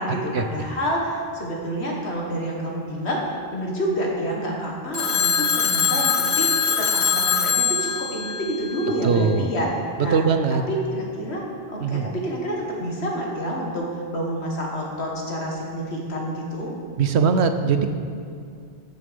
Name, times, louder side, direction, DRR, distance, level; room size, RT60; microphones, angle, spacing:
voice 1, 0.0-6.5 6.8-9.7 10.0-10.2 10.5-11.4 11.7-16.7, equal, 85° left, -2 dB, 2.1 m, -28 dB
Telephone, 4.9-9.2, left 7 dB, 45° left, 0.4 m, -23 dB
voice 2, 9.0-9.5 10.1-10.6 11.8-12.1 17.0-17.9, right 5 dB, 85° right, 8 dB, 1.0 m, -20 dB
13.5 x 6.7 x 5.3 m, 2.3 s
omnidirectional pair, 1.1 m